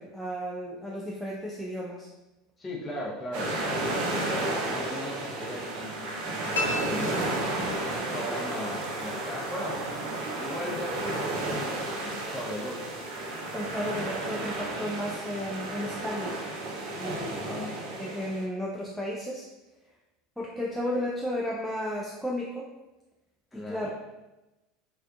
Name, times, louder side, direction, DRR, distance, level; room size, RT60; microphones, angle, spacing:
voice 1, 0.0-2.1 13.5-16.3 17.0-17.5 18.0-19.5 20.4-22.7 23.5-23.9, equal, 5° left, -5 dB, 0.4 m, -33 dB
voice 2, 2.6-3.6 4.0-7.5 8.1-9.8 10.4-12.9 13.7-13.8 17.2-17.8 23.5-23.9, left 1 dB, 20° left, -3 dB, 0.7 m, -38 dB
sound 1, 3.3-18.4, right 2 dB, 55° right, 0.5 m, -32 dB
sound 2, 6.5-8.1, left 3 dB, 70° left, 0.4 m, -34 dB
3.4 x 2.4 x 2.2 m, 1.0 s
figure-of-eight pair, 75°, 0 cm